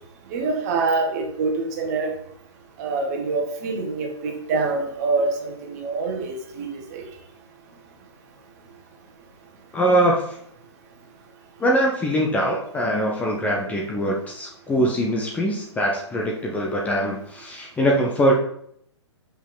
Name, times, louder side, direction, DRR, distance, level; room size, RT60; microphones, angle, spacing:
voice 1, 0.3-2.2 2.8-7.0, right 3 dB, 35° right, 3 dB, 1.5 m, -25 dB
voice 2, 9.7-10.2 11.6-18.4, right 1 dB, 10° left, -1 dB, 0.8 m, -22 dB
6.3 x 5.5 x 3.9 m, 0.69 s
figure-of-eight pair, 120°, 15 cm